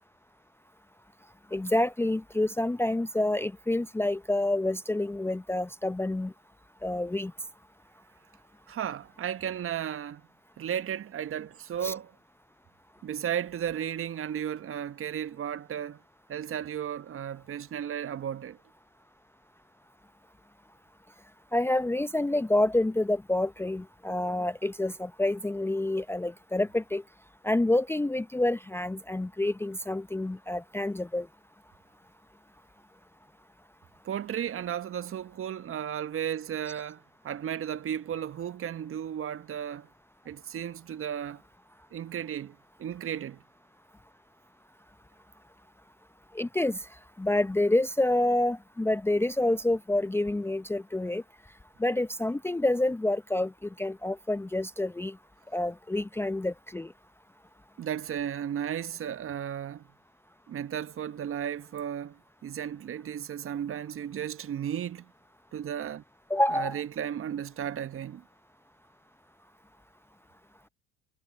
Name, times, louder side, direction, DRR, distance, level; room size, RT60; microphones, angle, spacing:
voice 1, 1.5-6.3 6.8-7.3 11.8-11.9 21.5-27.0 27.4-31.3 46.3-46.8 47.2-51.2 51.8-53.5 53.8-55.2 55.5-56.9 66.3-66.8, left 1 dB, 5° left, 0.7 m, -28 dB
voice 2, 8.7-10.2 10.6-12.1 13.0-16.0 16.3-18.6 34.0-39.9 40.2-41.4 41.9-43.4 57.8-59.9 60.5-65.1 65.5-66.0 66.5-68.2, right 9 dB, 45° right, 1.5 m, -34 dB
hypercardioid pair, 65°, 32 cm